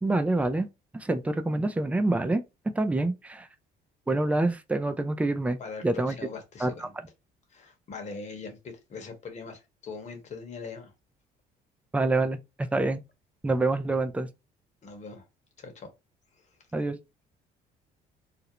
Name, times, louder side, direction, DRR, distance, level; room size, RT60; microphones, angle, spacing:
voice 1, 0.0-0.7 0.9-3.5 4.1-6.1 6.6-6.7 11.9-13.0 13.4-14.3 16.7-17.0, right 2 dB, 10° right, 0.3 m, -27 dB
voice 2, 5.6-6.9 7.5-10.9 14.8-15.2 15.6-15.9 16.3-16.5, left 4 dB, 45° left, 1.0 m, -41 dB
2.5 x 2.0 x 2.8 m
cardioid pair, 110°, 17 cm